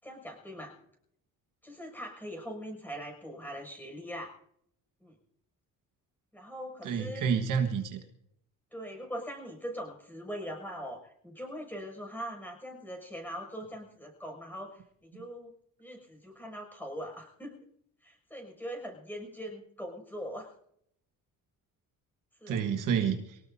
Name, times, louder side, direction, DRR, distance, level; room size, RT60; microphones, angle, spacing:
voice 1, 0.0-0.7 1.6-4.3 5.0-5.1 6.3-7.4 8.7-15.5 15.8-17.7 18.0-20.5 22.4-22.6, equal, 5° left, 1 dB, 6.5 m, -41 dB
voice 2, 6.8-8.0 22.5-23.4, right 7 dB, 70° right, 5 dB, 1.6 m, -29 dB
24.0 x 18.5 x 2.7 m, 0.71 s
cardioid pair, 115°, 33 cm